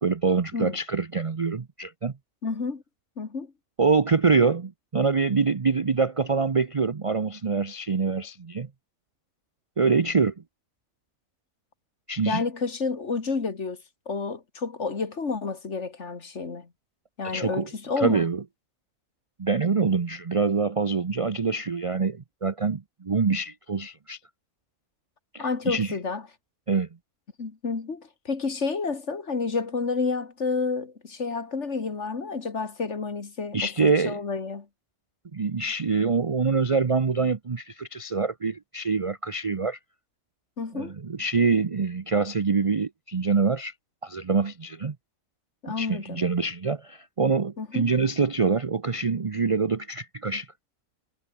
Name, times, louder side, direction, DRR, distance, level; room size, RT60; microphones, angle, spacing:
voice 1, 0.0-2.1 3.8-8.7 9.8-10.3 12.1-12.4 17.2-17.7 18.0-18.4 19.4-24.2 25.3-26.0 26.7-26.9 33.5-34.2 35.3-39.8 40.7-43.7 44.0-45.0 45.8-50.5, right 4 dB, 35° right, 0.5 m, -25 dB
voice 2, 2.4-2.8 3.2-3.5 12.3-13.8 14.1-16.7 17.2-18.2 25.4-26.2 27.4-34.7 40.6-40.9 45.6-46.2 47.6-47.9, left 4 dB, 50° left, 2.3 m, -30 dB
omnidirectional pair, 1.5 m